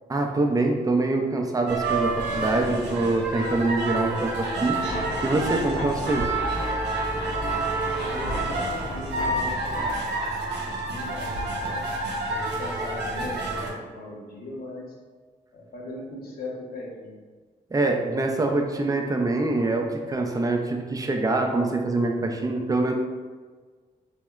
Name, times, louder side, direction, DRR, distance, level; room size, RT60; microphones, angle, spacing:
voice 1, 0.1-6.3 17.7-22.9, right 2 dB, 20° right, 3 dB, 0.4 m, -25 dB
sound 1, 1.7-13.7, right 2 dB, 80° right, 0.5 m, -29 dB
sound 2, 4.9-10.0, left 1 dB, 30° left, 0.7 m, -35 dB
voice 2, 7.9-10.1 10.4-11.9 12.3-14.9 15.5-17.2, left 2 dB, 55° left, -3 dB, 0.9 m, -39 dB
2.8 x 2.1 x 2.3 m, 1.5 s
supercardioid pair, 50°, 18 cm